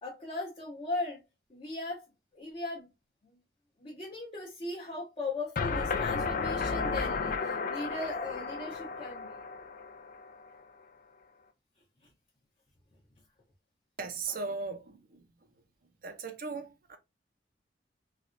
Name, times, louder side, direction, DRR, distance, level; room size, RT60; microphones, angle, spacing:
voice 1, 0.0-1.2 1.5-2.0 2.3-2.9 3.8-9.4, left 2 dB, 35° left, 0.8 m, -38 dB
sound 1, 5.6-10.5, left 4 dB, 50° left, 0.4 m, -33 dB
voice 2, 14.0-15.2 16.0-17.0, right 4 dB, 55° right, 0.6 m, -37 dB
3.3 x 2.3 x 2.5 m
head